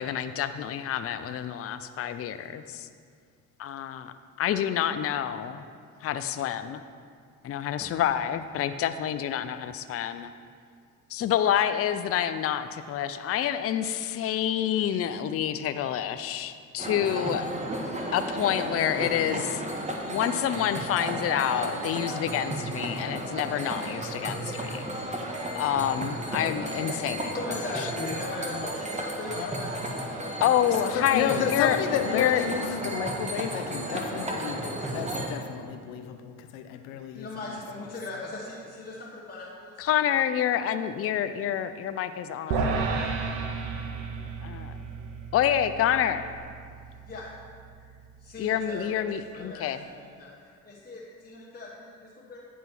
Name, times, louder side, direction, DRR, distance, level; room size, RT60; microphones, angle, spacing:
voice 1, 0.0-2.9 3.6-4.1 4.4-5.6 6.0-6.8 7.4-10.3 11.1-17.5 18.1-19.6 20.1-24.8 25.5-27.3 27.8-27.9 30.4-31.8 32.1-32.4 39.8-42.7 44.4-44.8 45.3-46.2 48.4-49.8, left 10 dB, 40° left, 10 dB, 0.4 m, -28 dB
sound 1, 16.8-35.3, right 1 dB, 20° right, 1.2 m, -33 dB
voice 2, 24.2-25.1 27.3-30.4 30.9-31.0 36.4-36.5 37.1-39.7 42.5-43.0 47.1-47.3 47.8-47.9 48.2-48.9 49.3-50.3 50.6-52.5, left 2 dB, 25° left, -5 dB, 1.1 m, -39 dB
voice 3, 30.8-37.3, left 8 dB, 85° left, 7 dB, 0.6 m, -31 dB
sound 2, 42.5-48.9, right 4 dB, 90° right, 0.7 m, -33 dB
9.2 x 3.7 x 6.0 m, 2.1 s
supercardioid pair, 60°, 36 cm